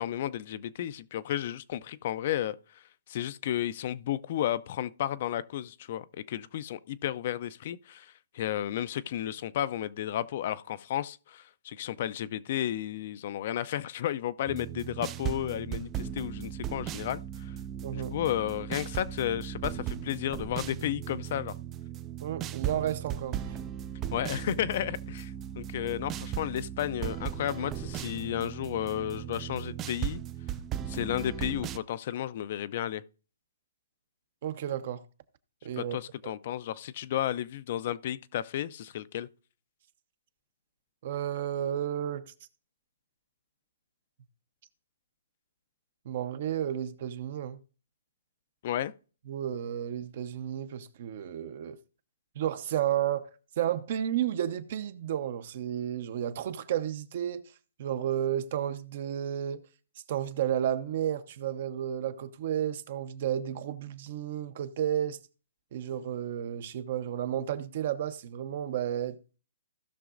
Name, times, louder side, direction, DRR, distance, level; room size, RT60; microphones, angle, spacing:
voice 1, 0.0-2.6 3.1-17.5 17.9-21.5 24.1-30.2 30.9-33.0 35.8-39.3 48.6-48.9, left 11 dB, 45° left, 0.4 m, -33 dB
sound 1, 14.5-31.8, right 10 dB, 20° right, 0.3 m, -37 dB
voice 2, 17.8-18.1 22.2-23.6 34.4-35.0 35.6-36.0 41.0-42.3 46.0-47.6 49.3-51.8 52.4-53.3 53.6-57.4 57.8-59.6 60.1-65.2 65.7-69.2, right 10 dB, 50° right, 0.8 m, -32 dB
16.5 x 6.1 x 2.5 m
hypercardioid pair, 150°, 0 cm